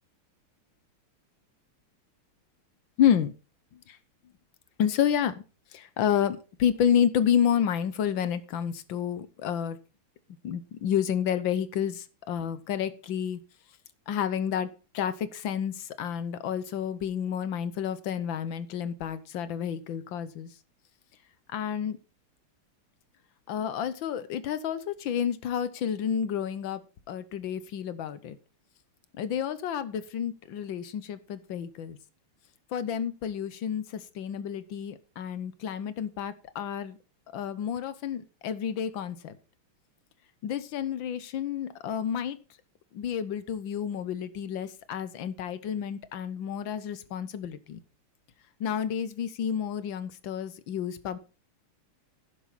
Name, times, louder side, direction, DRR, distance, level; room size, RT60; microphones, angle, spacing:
voice 1, 3.0-3.3 3.9-4.0 4.8-5.3 5.7-9.8 10.4-13.4 14.1-14.7 14.9-20.5 21.5-22.0 23.5-26.8 27.1-28.4 29.2-32.0 32.7-33.8 34.1-37.0 37.3-39.3 40.4-42.4 42.9-47.8 48.6-51.2, left 9 dB, 65° left, 14 dB, 1.6 m, -30 dB
11.5 x 10.0 x 4.2 m, 0.33 s
omnidirectional pair, 2.4 m